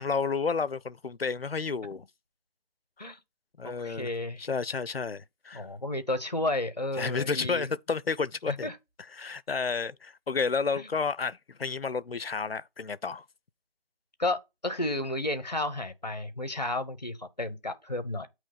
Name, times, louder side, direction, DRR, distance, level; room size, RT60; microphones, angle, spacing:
voice 1, 0.0-2.1 3.0-3.1 3.6-4.1 4.4-5.7 7.0-8.7 9.2-13.2, left 5 dB, 75° left, 0.6 m, -31 dB
voice 2, 3.6-4.4 5.5-7.7 8.5-8.8 10.8-10.9 14.2-18.3, left 2 dB, 45° left, 1.0 m, -32 dB
8.2 x 3.1 x 5.7 m
figure-of-eight pair, 175°, 30 cm